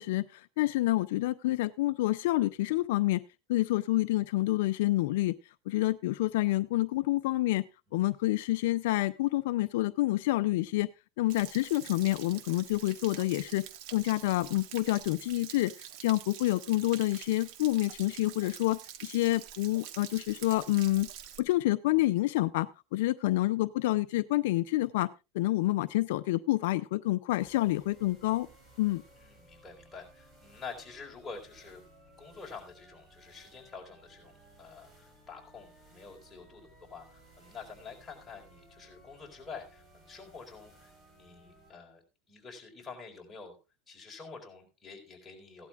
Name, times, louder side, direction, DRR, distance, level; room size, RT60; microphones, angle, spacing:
voice 1, 0.0-3.2 3.5-5.3 5.7-7.6 7.9-10.9 11.2-13.6 13.9-15.7 16.0-21.1 21.4-25.1 25.3-28.5 28.8-29.0, left 17 dB, 80° left, 13 dB, 0.5 m, -28 dB
Stream / Splash splatter / Trickle dribble, 11.3-21.4, right 10 dB, 65° right, 1.2 m, -47 dB
sound 1, 27.4-41.7, right 1 dB, 25° right, 4.4 m, -59 dB
voice 2, 29.2-31.8 32.2-34.3 34.6-42.0 42.3-43.6 43.9-45.7, left 5 dB, 15° left, -1 dB, 4.6 m, -47 dB
16.5 x 12.0 x 2.4 m, 0.27 s
supercardioid pair, 130°, 0 cm